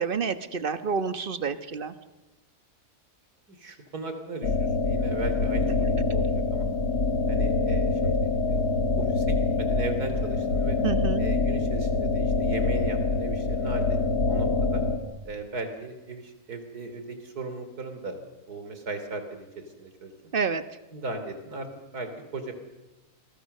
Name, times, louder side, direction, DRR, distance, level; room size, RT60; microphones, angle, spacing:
voice 1, 0.0-1.9 10.8-11.2 20.3-20.6, right 5 dB, 40° right, 11 dB, 1.3 m, -28 dB
voice 2, 3.5-6.7 7.3-8.6 9.0-10.8 11.2-14.0 14.3-14.8 15.3-18.2 18.5-20.1 20.9-21.7 21.9-22.5, right 3 dB, 90° right, 8 dB, 3.6 m, -37 dB
sound 1, 4.4-15.0, left 3 dB, 90° left, 3.0 m, -25 dB
28.0 x 23.0 x 6.7 m, 1.0 s
omnidirectional pair, 1.6 m